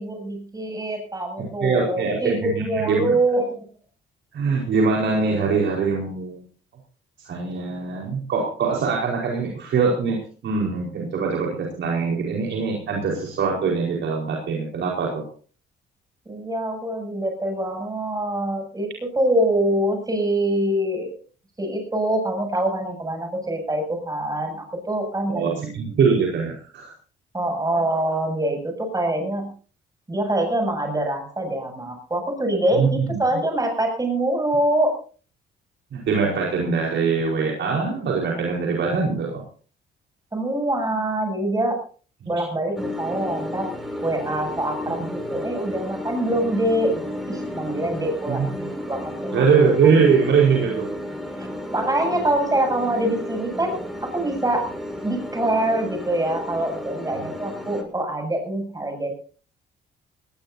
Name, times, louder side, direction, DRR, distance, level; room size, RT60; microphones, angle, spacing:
voice 1, 0.0-3.6 16.3-21.2 21.6-25.8 27.3-29.5 30.1-35.0 40.3-41.8 42.2-43.7 44.0-49.5 51.4-53.8 54.1-54.7 55.0-59.1, right 1 dB, 20° right, 3 dB, 7.6 m, -25 dB
voice 2, 1.6-3.2 4.3-6.4 7.2-15.2 25.3-26.9 32.8-33.2 35.9-39.4 48.3-48.5 49.3-50.9, right 5 dB, 70° right, -1 dB, 4.8 m, -22 dB
sound 1, 42.8-57.8, left 1 dB, ahead, 5.7 m, -33 dB
19.5 x 19.0 x 2.8 m, 0.41 s
cardioid pair, 90°, 20 cm